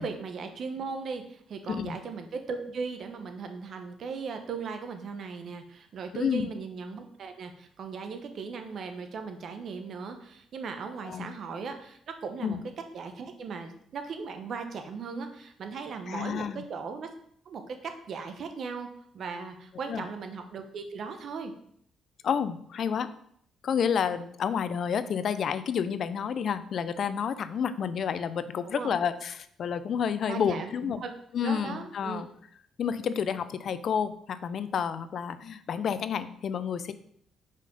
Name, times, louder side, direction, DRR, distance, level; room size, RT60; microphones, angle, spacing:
voice 1, 0.0-12.6 12.9-17.1 17.4-18.9 19.1-21.5 28.7-28.9 30.3-31.1 31.4-32.2, right 5 dB, 60° right, 6 dB, 1.0 m, -38 dB
voice 2, 16.1-16.6 19.9-20.1 22.2-23.1 23.6-31.0 31.3-32.3 32.8-36.9, left 7 dB, 60° left, 13 dB, 0.5 m, -30 dB
5.5 x 5.1 x 5.3 m, 0.66 s
cardioid pair, 90°, 0 cm